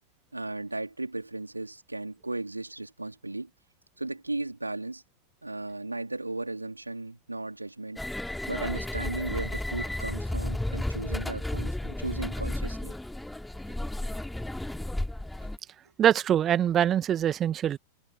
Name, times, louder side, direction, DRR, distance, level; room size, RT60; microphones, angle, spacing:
voice 1, 0.3-3.5 4.0-5.0 5.4-8.0 8.5-12.9, right 2 dB, 85° right, 3.7 m, -36 dB
sound 1, 8.0-15.6, left 1 dB, 5° left, 2.7 m, -33 dB
voice 2, 16.0-17.8, right 10 dB, 25° right, 1.7 m, -23 dB
figure-of-eight pair, 90°, 0 cm